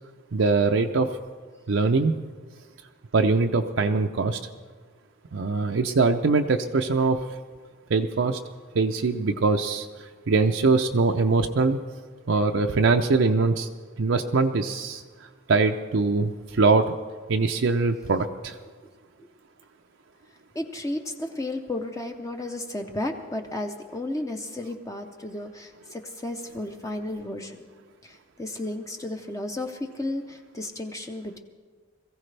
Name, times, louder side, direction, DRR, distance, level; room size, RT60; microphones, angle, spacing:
voice 1, 0.3-1.2 1.7-2.1 3.1-4.4 5.3-7.3 7.9-8.4 8.7-11.8 12.3-13.7 14.0-15.0 15.5-16.9 17.3-18.6, right 3 dB, 65° right, 4 dB, 0.5 m, -22 dB
voice 2, 20.5-27.7 28.0-31.4, left 1 dB, 15° left, 4 dB, 0.6 m, -33 dB
22.0 x 15.0 x 3.3 m, 1.5 s
head